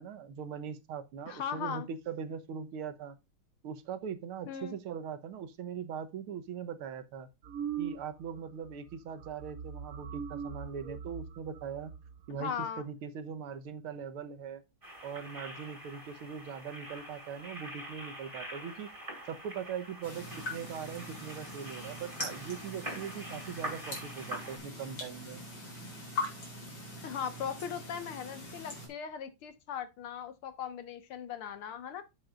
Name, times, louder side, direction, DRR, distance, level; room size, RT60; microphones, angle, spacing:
voice 1, 0.0-3.2 3.6-7.3 7.8-11.9 12.3-14.6 15.0-18.9 19.3-25.4, right 7 dB, 90° right, 1.9 m, -41 dB
voice 2, 1.3-1.9 4.5-4.8 12.4-12.8 27.0-32.0, left 8 dB, 90° left, 2.2 m, -38 dB
sound 1, 7.4-8.4 8.6-8.9 9.2-12.4, right 8 dB, 60° right, 1.0 m, -41 dB
sound 2, 14.8-24.6, right 1 dB, 25° right, 3.6 m, -45 dB
sound 3, 20.0-28.9, left 2 dB, 65° left, 5.3 m, -42 dB
11.0 x 7.8 x 2.5 m
omnidirectional pair, 2.3 m